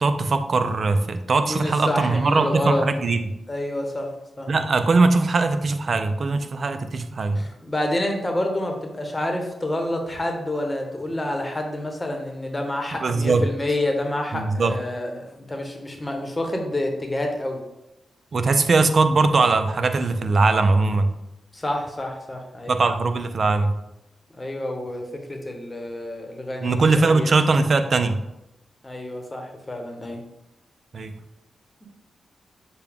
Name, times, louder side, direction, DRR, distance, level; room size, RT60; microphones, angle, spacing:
voice 1, 0.0-3.2 4.5-7.4 13.0-13.4 14.3-14.7 18.3-21.1 22.7-23.7 26.6-28.2 30.9-31.1, right 3 dB, 55° right, 9 dB, 0.4 m, -20 dB
voice 2, 1.5-2.8 3.5-4.1 4.4-4.5 7.4-17.6 21.5-22.8 24.4-27.3 28.8-30.2, left 1 dB, 25° left, 3 dB, 0.9 m, -28 dB
6.7 x 2.2 x 3.5 m, 0.90 s
cardioid pair, 60°, 0 cm